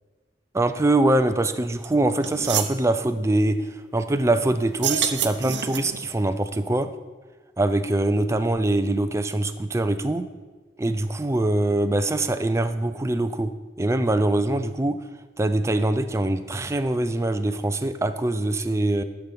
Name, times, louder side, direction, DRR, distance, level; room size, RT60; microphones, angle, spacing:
voice 1, 0.5-6.9 7.6-10.3 10.8-13.5 13.8-15.0 15.4-19.0, right 2 dB, 15° right, 9 dB, 0.4 m, -23 dB
sound 1, 1.8-1.9 2.2-2.8 4.7-6.0, right 9 dB, 85° right, 0.7 m, -27 dB
12.0 x 5.9 x 5.2 m, 1.3 s
head